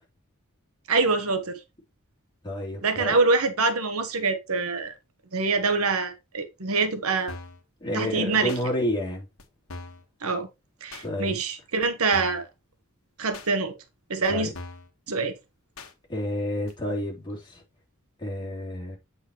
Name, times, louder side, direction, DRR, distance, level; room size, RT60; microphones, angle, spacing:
voice 1, 0.9-1.6 2.8-4.9 5.3-7.3 7.9-8.6 10.2-10.5 10.8-12.4 13.2-13.7 14.1-14.5 15.1-15.3, right 4 dB, 85° right, 1.2 m, -25 dB
voice 2, 2.4-3.2 7.8-9.2 11.0-11.4 14.3-14.5 16.1-17.6 18.2-19.0, left 1 dB, 20° left, 3.3 m, -30 dB
sound 1, 7.3-7.6 8.5-8.6 9.4-9.5 9.7-10.0 10.9-11.1 11.8-11.9 12.1-12.5 13.3-13.5 14.2-14.3 14.5-14.9 15.8-15.9 16.7-16.8, left 3 dB, 70° left, 1.4 m, -41 dB
8.6 x 5.5 x 3.0 m
head